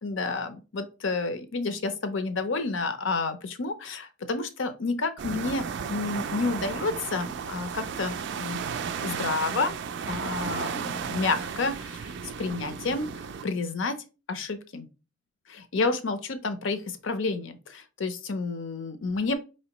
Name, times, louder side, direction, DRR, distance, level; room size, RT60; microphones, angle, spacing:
voice 1, 0.0-8.6 9.0-9.8 10.1-12.1 12.4-13.1 13.4-14.0 14.3-14.9 15.5-19.3, left 3 dB, 65° left, 0.6 m, -30 dB
sound 1, 5.2-13.4, right 6 dB, 60° right, 0.4 m, -34 dB
4.3 x 3.1 x 2.9 m
head